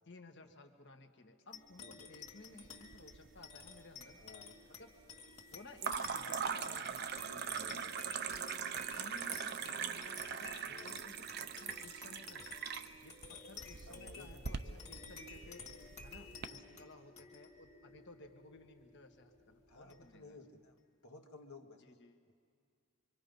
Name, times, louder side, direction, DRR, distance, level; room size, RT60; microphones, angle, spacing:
voice 1, 0.1-4.2 4.8-4.9 5.5-7.3 7.7-7.9 8.6-12.5 13.0-15.7 16.0-20.4 21.8-22.3, left 2 dB, 55° left, 5 dB, 1.5 m, -57 dB
sound 1, 1.5-20.4, left 4 dB, 30° left, 2.2 m, -54 dB
voice 2, 1.8-2.1 4.2-4.6 7.2-8.1 10.8-11.1 13.8-14.8 16.7-16.8 19.7-20.8 21.0-22.0 22.3-22.4, left 2 dB, 85° left, 3 dB, 2.0 m, -56 dB
sound 2, 2.6-3.4 3.7-4.3 5.8-16.5, right 7 dB, 50° right, 0.7 m, -41 dB
25.5 x 25.5 x 5.4 m, 2.3 s
head